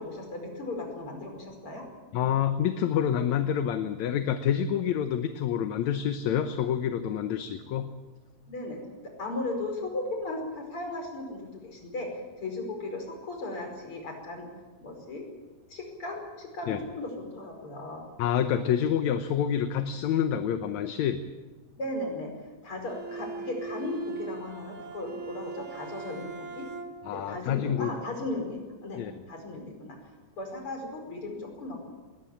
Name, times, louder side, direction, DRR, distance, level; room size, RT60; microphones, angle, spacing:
voice 1, 0.0-1.9 8.5-14.5 14.8-15.3 15.7-18.0 21.8-22.3 22.6-26.7 27.1-30.0 30.4-31.8, left 2 dB, 45° left, 3 dB, 5.9 m, -36 dB
voice 2, 2.1-7.9 16.7-16.8 18.2-21.2 27.1-27.9 29.0-29.1, left 9 dB, 70° left, 8 dB, 2.2 m, -27 dB
Bowed string instrument, 22.8-27.2, right 4 dB, 45° right, 2.2 m, -40 dB
20.5 x 19.0 x 8.7 m, 1.2 s
omnidirectional pair, 3.5 m